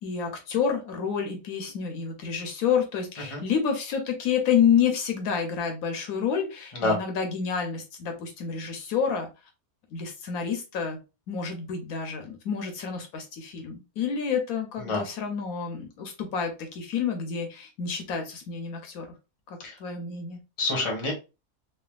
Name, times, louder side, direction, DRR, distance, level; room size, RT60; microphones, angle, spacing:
voice 1, 0.0-9.3 9.9-11.0 11.3-19.1 19.5-20.4, left 7 dB, 75° left, 4 dB, 1.0 m, -29 dB
voice 2, 20.6-21.1, left 2 dB, 25° left, 1 dB, 0.7 m, -27 dB
3.2 x 2.3 x 2.2 m, 0.29 s
omnidirectional pair, 1.7 m